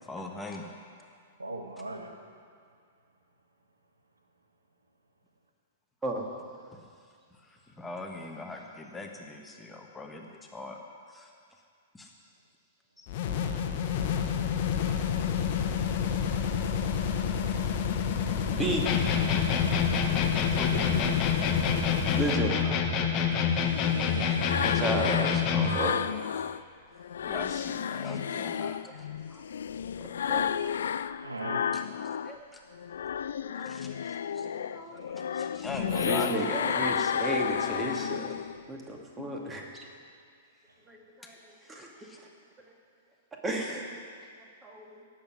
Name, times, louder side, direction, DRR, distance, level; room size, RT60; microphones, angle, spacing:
voice 1, 0.1-0.7 6.7-6.8 7.3-10.8 11.1-11.3 11.9-12.1 13.0-13.1 20.4-21.1 22.6-23.6 25.5-25.9 27.2-29.1 31.7-31.8 32.5-32.6 33.6-34.5 35.1-37.6 41.6-42.2, left 2 dB, 10° left, 1 dB, 1.3 m, -42 dB
voice 2, 1.4-2.1 19.6-19.7 20.5-20.9 31.1-31.7 35.8-37.0, right 2 dB, 80° right, 3 dB, 1.4 m, -38 dB
sound 1, 13.1-22.4, left 7 dB, 45° left, 1.1 m, -29 dB
voice 3, 18.5-18.9 22.1-22.6 24.0-24.3 24.6-26.0 29.3-29.4 30.3-30.5 32.2-32.5 33.4-33.7 34.4-35.1 35.4-35.5 36.0-38.3 38.7-39.9 40.9-42.3 43.4-44.0 44.6-45.0, right 1 dB, 15° right, 0 dB, 2.2 m, -34 dB
sound 2, 18.8-25.8, left 6 dB, 30° left, 1.3 m, -27 dB
sound 3, 23.2-26.6 27.0-32.4 32.7-38.6, left 8 dB, 65° left, 0.3 m, -32 dB
17.5 x 7.6 x 6.2 m, 2.2 s
figure-of-eight pair, 105°, 0 cm